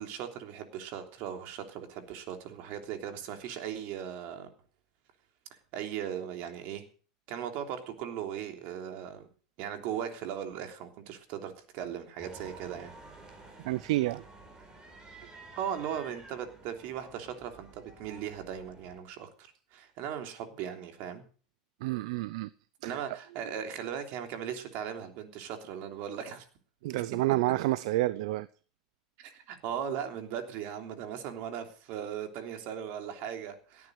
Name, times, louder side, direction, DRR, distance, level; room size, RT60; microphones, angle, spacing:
voice 1, 0.0-4.5 5.5-6.8 7.3-9.3 9.6-12.9 15.6-21.2 22.8-26.5 26.9-27.2 29.2-33.9, right 9 dB, 60° right, 3.4 m, -38 dB
sound 1, 12.2-19.0, right 2 dB, 20° right, 4.8 m, -51 dB
voice 2, 13.6-14.2 21.8-22.5 22.8-23.0 26.8-28.5, right 17 dB, 75° right, 0.6 m, -29 dB
17.5 x 9.6 x 6.6 m
supercardioid pair, 115°, 3 cm